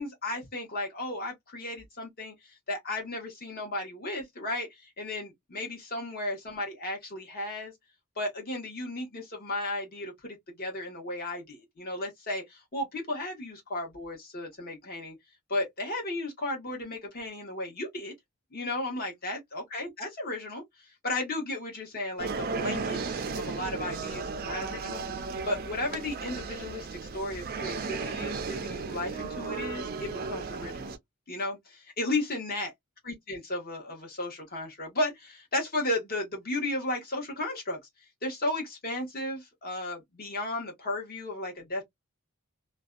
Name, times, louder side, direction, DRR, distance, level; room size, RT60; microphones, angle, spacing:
voice 1, 0.0-2.3 2.7-7.7 8.2-15.2 15.5-18.1 18.5-30.9 31.3-32.7 33.0-37.8 38.2-41.8, left 2 dB, 40° left, 1.1 m, -34 dB
sound 1, 22.2-31.0, right 4 dB, 40° right, 0.3 m, -35 dB
2.5 x 2.2 x 2.3 m
head